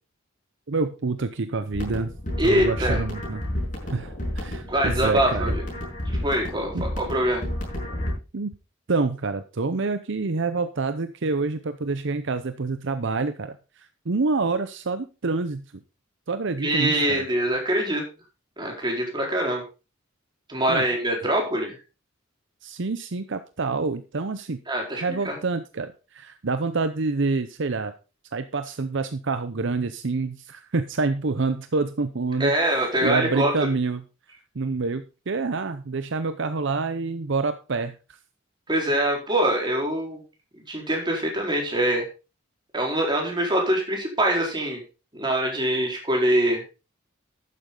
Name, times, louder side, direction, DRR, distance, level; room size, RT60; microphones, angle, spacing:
voice 1, 0.7-2.1 2.4-3.4 3.9-5.5 6.7-6.8 8.3-8.5 8.9-15.6 16.3-17.3 20.7-20.9 22.6-24.6 25.0-27.9 28.3-34.0 34.5-38.2, right 3 dB, 65° right, 10 dB, 0.7 m, -27 dB
sound 1, 1.7-8.1, left 1 dB, 40° left, 6.1 m, -30 dB
voice 2, 2.4-3.0 4.7-5.7 6.1-7.4 16.6-18.0 18.6-19.6 20.5-21.8 24.7-25.4 32.4-33.7 38.7-40.2 40.7-42.1 42.7-44.8 45.1-46.6, right 1 dB, 25° right, 0 dB, 4.3 m, -24 dB
12.0 x 9.5 x 3.8 m, 0.31 s
head